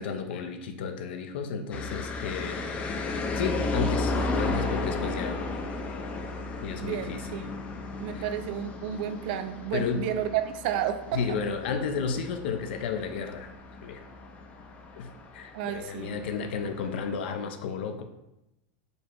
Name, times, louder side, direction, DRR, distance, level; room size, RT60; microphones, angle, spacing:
voice 1, 0.0-2.6 2.9-5.5 6.6-7.2 8.1-8.3 9.7-10.1 11.1-13.5 13.8-14.0 15.0-18.0, left 5 dB, 75° left, 7 dB, 0.5 m, -33 dB
sound 1, 1.7-17.2, left 3 dB, 25° left, 0.5 m, -34 dB
voice 2, 6.8-7.5 8.0-11.2 15.5-16.2, right 10 dB, 60° right, 9 dB, 0.4 m, -31 dB
5.2 x 2.0 x 4.5 m, 0.90 s
supercardioid pair, 145°, 6 cm